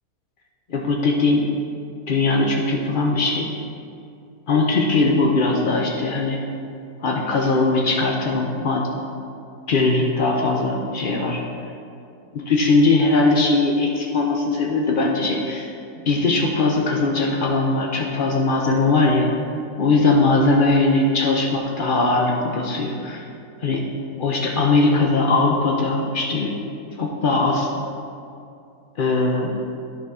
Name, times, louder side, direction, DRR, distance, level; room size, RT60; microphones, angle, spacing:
voice 1, 0.7-1.4 2.1-3.5 4.5-6.4 7.0-8.8 9.7-11.4 12.3-15.7 16.1-19.3 19.8-23.2 23.6-23.8 24.2-26.5 27.0-27.7 29.0-29.5, left 3 dB, 80° left, 0 dB, 0.4 m, -20 dB
10.5 x 4.0 x 4.8 m, 2.5 s
omnidirectional pair, 1.8 m